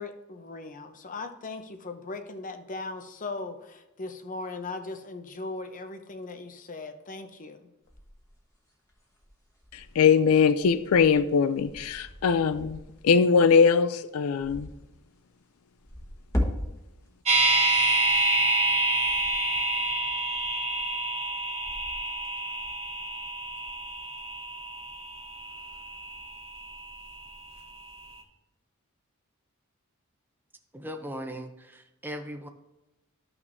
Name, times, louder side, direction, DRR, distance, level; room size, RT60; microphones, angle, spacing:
voice 1, 0.0-7.7, left 3 dB, 40° left, 7 dB, 0.7 m, -38 dB
sound 1, 7.9-13.5 14.1-14.8 15.6-18.4 18.8-21.2 21.5-23.1 23.5-24.2, left 1 dB, 15° left, 1.2 m, -38 dB
voice 2, 9.7-12.8 13.0-14.7, left 6 dB, 75° left, 13 dB, 0.4 m, -21 dB
sound 2, 17.2-27.3 27.6-27.7, right 2 dB, 30° right, 1.2 m, -28 dB
voice 3, 30.7-32.5, equal, 10° right, 5 dB, 0.5 m, -38 dB
13.5 x 5.9 x 2.7 m, 0.94 s
head